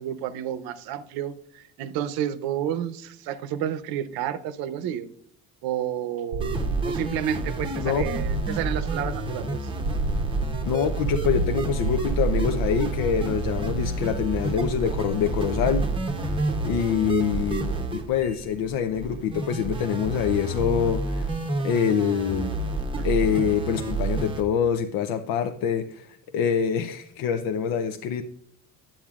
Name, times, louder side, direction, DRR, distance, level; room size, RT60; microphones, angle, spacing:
voice 1, 0.0-5.1 5.6-9.7 23.0-23.1, right 10 dB, 80° right, 0.7 m, -31 dB
sound 1, 6.3-22.2, right 3 dB, 45° right, 0.8 m, -33 dB
sound 2, 6.4-24.4, right 2 dB, 15° right, 0.8 m, -29 dB
voice 2, 10.7-15.9 16.2-16.4 16.6-21.4 21.6-22.6 23.0-28.2, left 8 dB, 70° left, 0.6 m, -25 dB
10.0 x 8.6 x 2.4 m
cardioid pair, 135°, 35 cm